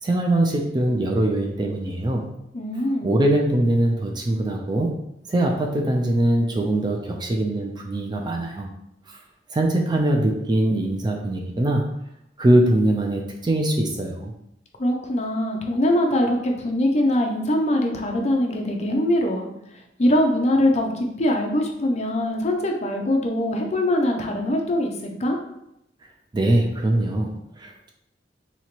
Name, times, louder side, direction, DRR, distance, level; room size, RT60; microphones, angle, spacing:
voice 1, 0.0-2.3 3.0-4.9 5.3-8.7 9.1-9.2 9.5-11.8 12.4-14.3 26.3-27.9, right 1 dB, 25° right, 2 dB, 0.4 m, -22 dB
voice 2, 2.5-3.1 14.8-19.5 20.0-25.4, left 1 dB, 40° left, 1 dB, 0.6 m, -22 dB
2.9 x 2.8 x 4.4 m, 0.81 s
head